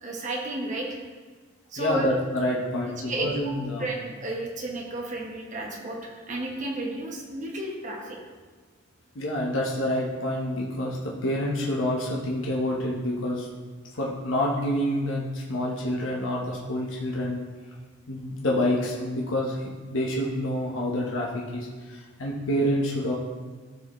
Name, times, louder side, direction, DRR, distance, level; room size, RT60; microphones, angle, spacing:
voice 1, 0.0-1.0 1.7-2.1 3.0-3.5 3.8-8.2, right 1 dB, 40° right, -1 dB, 1.1 m, -32 dB
voice 2, 1.8-3.9 9.1-13.5 13.9-17.4 18.1-23.1, left 1 dB, 80° left, -3 dB, 1.1 m, -28 dB
14.0 x 4.8 x 3.2 m, 1.4 s
head